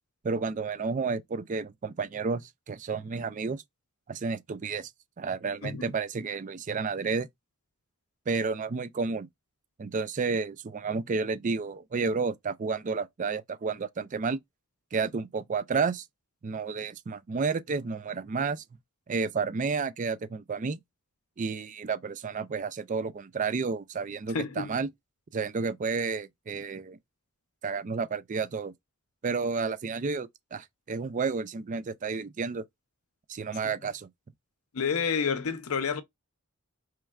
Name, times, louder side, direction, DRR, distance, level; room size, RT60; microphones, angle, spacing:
voice 1, 0.2-3.6 4.1-4.9 5.2-7.3 8.3-9.3 9.8-14.4 14.9-16.0 16.4-18.6 19.1-20.8 21.4-24.9 25.3-27.0 27.6-28.7 29.2-32.6 33.3-34.1, right 4 dB, 35° right, 0.3 m, -31 dB
voice 2, 5.6-5.9 24.3-24.8 33.6-33.7 34.7-36.0, left 6 dB, 75° left, 0.6 m, -29 dB
4.5 x 3.1 x 2.3 m
head